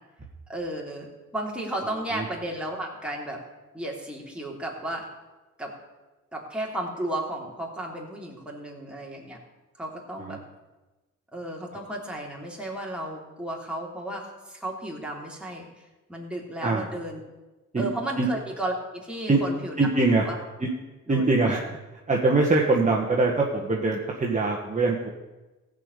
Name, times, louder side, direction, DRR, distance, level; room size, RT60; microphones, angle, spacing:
voice 1, 0.5-3.4 3.7-5.1 5.6-5.7 6.3-9.4 9.8-10.4 11.3-15.7 16.1-17.2 17.8-19.8 20.2-20.3 21.1-21.6, right 1 dB, 5° right, -2 dB, 3.2 m, -34 dB
voice 2, 19.8-20.3 20.6-20.7 21.1-21.8 22.1-25.1, right 3 dB, 25° right, -2 dB, 1.7 m, -23 dB
15.0 x 5.2 x 8.3 m, 1.1 s
cardioid pair, 90°, 30 cm